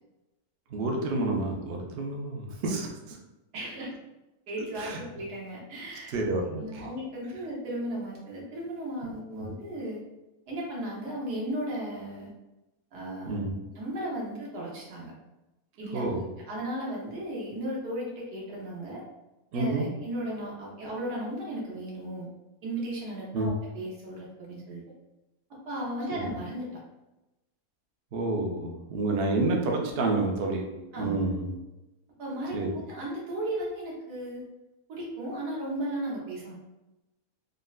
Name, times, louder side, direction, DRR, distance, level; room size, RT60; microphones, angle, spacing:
voice 1, 0.7-3.2 4.7-5.0 6.1-6.9 13.3-13.5 15.9-16.2 19.5-19.9 23.3-23.5 26.1-26.2 28.1-31.4 32.5-32.7, right 2 dB, 65° right, 0 dB, 0.6 m, -29 dB
voice 2, 3.5-3.9 4.5-6.1 6.6-10.0 10.5-12.3 12.9-13.4 13.7-15.1 15.8-16.2 16.5-19.0 19.5-22.3 22.6-24.8 25.7-26.7 30.9-31.1 32.2-34.4 34.9-36.5, right 1 dB, 90° right, -4 dB, 1.4 m, -35 dB
3.6 x 2.1 x 2.3 m, 1.0 s
omnidirectional pair, 1.6 m